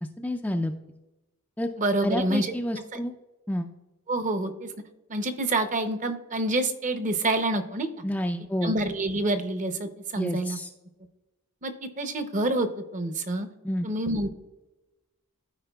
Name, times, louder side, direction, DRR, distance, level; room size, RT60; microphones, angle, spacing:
voice 1, 0.2-0.7 1.6-1.7 2.0-3.1 3.5-3.7 8.0-8.7 10.2-10.7 13.6-13.9, left 1 dB, 5° left, 4 dB, 0.3 m, -29 dB
voice 2, 1.8-2.5 4.1-4.7 5.1-7.9 8.6-10.6 11.6-12.7 12.9-13.5 13.8-14.3, right 2 dB, 35° right, 8 dB, 0.7 m, -27 dB
14.0 x 4.8 x 2.3 m, 1.1 s
head